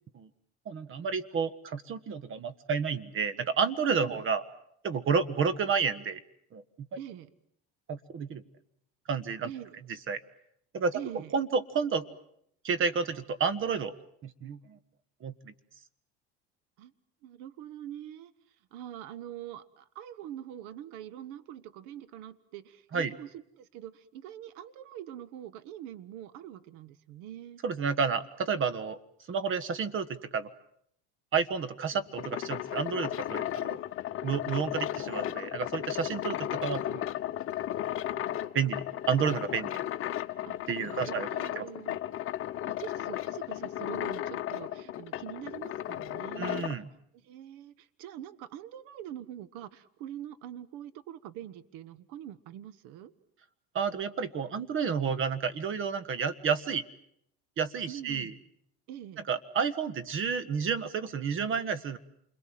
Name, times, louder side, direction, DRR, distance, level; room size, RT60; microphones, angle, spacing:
voice 1, 0.6-4.4 4.8-6.2 6.5-6.9 7.9-8.4 9.1-9.5 10.1-10.2 10.7-11.0 11.3-12.1 12.6-13.9 14.2-14.8 15.2-15.5 22.9-23.1 27.6-29.0 29.3-30.5 31.3-33.8 34.2-37.1 38.1-39.8 40.7-41.3 41.5-41.6 46.4-46.9 53.7-56.8 57.6-58.3 59.3-62.0, right 6 dB, 40° right, 15 dB, 1.5 m, -30 dB
voice 2, 3.9-4.2 7.0-7.3 9.4-9.8 10.9-11.3 16.8-16.9 17.2-18.3 18.7-27.6 40.5-40.6 40.9-42.0 42.7-46.7 47.1-53.1 57.9-58.3 58.9-59.2, right 11 dB, 70° right, 16 dB, 1.3 m, -44 dB
sound 1, 31.9-46.8, left 12 dB, 40° left, 1.0 m, -35 dB
28.0 x 22.0 x 7.7 m, 0.71 s
supercardioid pair, 100°, 32 cm